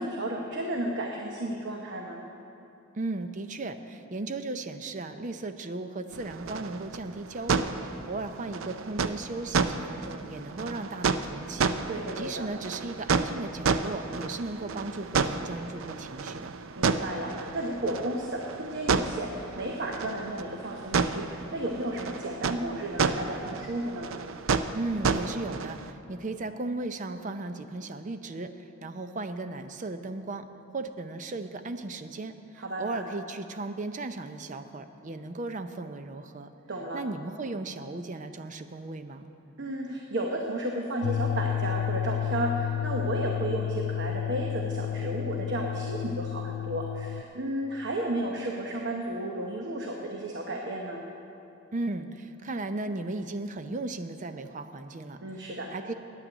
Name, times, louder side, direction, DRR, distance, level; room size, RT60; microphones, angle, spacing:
voice 1, 0.0-2.2 11.9-12.5 16.8-24.1 32.6-33.0 36.7-37.0 39.6-51.0 55.2-55.7, right 1 dB, 60° right, 0 dB, 1.0 m, -33 dB
voice 2, 3.0-11.7 12.2-16.5 24.7-36.5 36.9-39.3 51.7-55.9, right 2 dB, 40° right, 9 dB, 0.5 m, -36 dB
sound 1, 6.1-25.9, right 5 dB, 90° right, 0.5 m, -31 dB
sound 2, 41.0-47.2, left 11 dB, 80° left, 0.3 m, -31 dB
9.5 x 8.8 x 8.1 m, 2.9 s
head